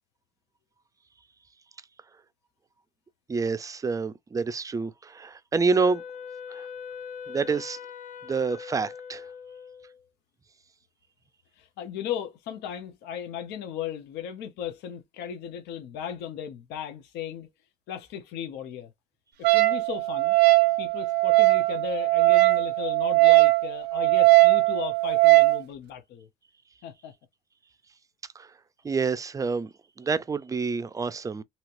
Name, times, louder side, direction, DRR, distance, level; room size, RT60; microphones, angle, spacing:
voice 1, 3.3-6.0 6.5-6.7 7.3-7.8 8.2-9.3 28.4-28.5 28.8-31.4, right 4 dB, 20° right, 0.4 m, -28 dB
Wind instrument woodwind instrument, 5.7-10.0, left 7 dB, 50° left, 0.5 m, -41 dB
voice 2, 11.6-17.5 17.9-18.9 19.4-20.4 20.8-26.3 26.8-27.1, left 9 dB, 85° left, 0.8 m, -36 dB
Wind instrument woodwind instrument 2, 19.4-25.6, right 24 dB, 85° right, 0.4 m, -20 dB
3.1 x 2.8 x 2.5 m
cardioid pair, 110°, 17 cm